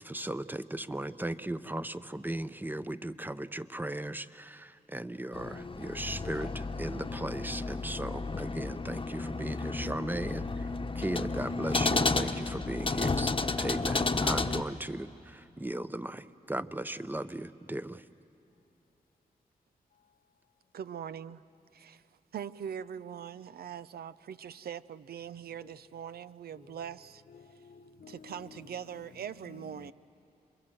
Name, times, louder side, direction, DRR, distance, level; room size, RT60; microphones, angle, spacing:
voice 1, 0.0-10.7 11.0-13.3 13.6-18.0, right 1 dB, 10° right, 0.8 m, -37 dB
sound 1, 5.3-14.6, left 3 dB, 35° left, 1.0 m, -32 dB
voice 2, 20.7-21.4 21.7-22.0 22.3-27.2 28.1-29.9, right 8 dB, 75° right, 0.6 m, -42 dB
voice 3, 27.3-28.6 29.8-29.9, left 6 dB, 65° left, 0.7 m, -52 dB
28.0 x 22.0 x 7.7 m
cardioid pair, 55°, 16 cm